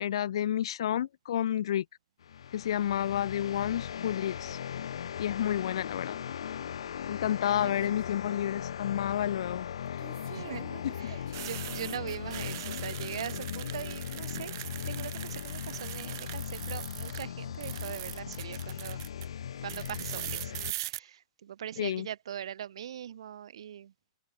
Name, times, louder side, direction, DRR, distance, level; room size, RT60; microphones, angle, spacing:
voice 1, 0.0-1.8 2.5-4.6 5.2-6.2 7.1-10.0 10.8-10.9 21.8-22.1, left 10 dB, 70° left, 1.4 m, -30 dB
sound 1, 2.2-20.7, left 8 dB, 90° left, 1.4 m, -38 dB
sound 2, 7.6-8.1 10.0-17.3 17.5-19.3 19.7-21.0, right 18 dB, 45° right, 2.4 m, -42 dB
voice 2, 7.6-7.9 10.3-10.6 11.0-14.5 14.8-19.0 19.6-23.9, right 10 dB, 75° right, 6.1 m, -41 dB
hypercardioid pair, 160°, 3 cm